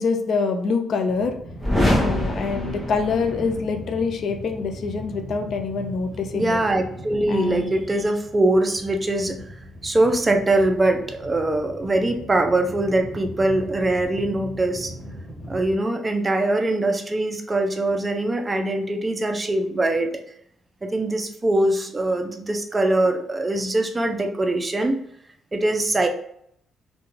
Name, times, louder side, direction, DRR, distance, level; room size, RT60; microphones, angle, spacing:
voice 1, 0.0-1.4 2.0-6.6 7.3-7.7, left 4 dB, 60° left, 6 dB, 0.3 m, -25 dB
sound 1, 1.1-15.8, equal, 35° left, 1.1 m, -39 dB
sound 2, 1.6-3.6, left 1 dB, 5° left, 0.8 m, -24 dB
voice 2, 6.3-9.4 9.8-14.9 15.5-20.1 20.8-25.0 25.5-26.1, right 2 dB, 25° right, 5 dB, 0.4 m, -22 dB
2.3 x 2.2 x 3.0 m, 0.69 s
cardioid pair, 90°, 0 cm